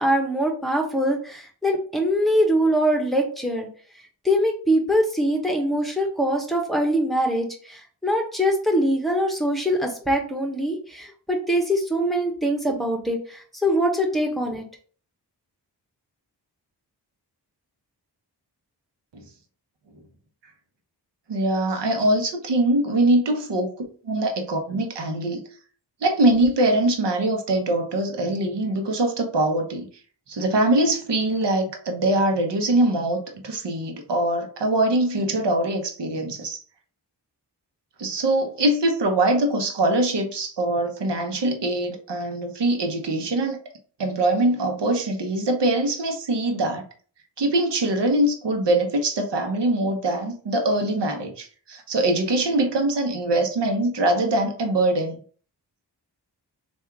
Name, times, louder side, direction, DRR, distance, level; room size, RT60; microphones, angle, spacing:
voice 1, 0.0-3.7 4.2-14.6, equal, ahead, 1.3 m, -23 dB
voice 2, 21.3-23.7 24.0-25.4 26.0-29.9 30.3-36.6 38.0-43.6 44.0-46.8 47.4-55.2, right 1 dB, 75° right, 1.1 m, -23 dB
3.4 x 2.7 x 4.6 m
cardioid pair, 50°, 42 cm